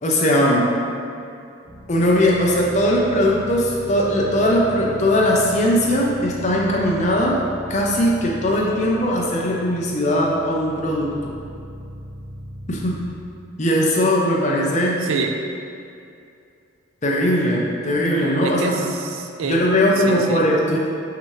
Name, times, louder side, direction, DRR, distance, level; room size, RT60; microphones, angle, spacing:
voice 1, 0.0-0.7 1.9-7.4 7.7-11.3 12.7-13.0 13.6-15.0 17.0-18.7 19.4-20.8, equal, 35° left, -3 dB, 0.6 m, -19 dB
sound 1, 1.7-13.1, equal, 45° right, 0.8 m, -38 dB
voice 2, 15.0-15.3 18.4-19.7 20.0-20.4, right 4 dB, 65° right, 4 dB, 0.4 m, -27 dB
5.9 x 2.8 x 3.2 m, 2.5 s
head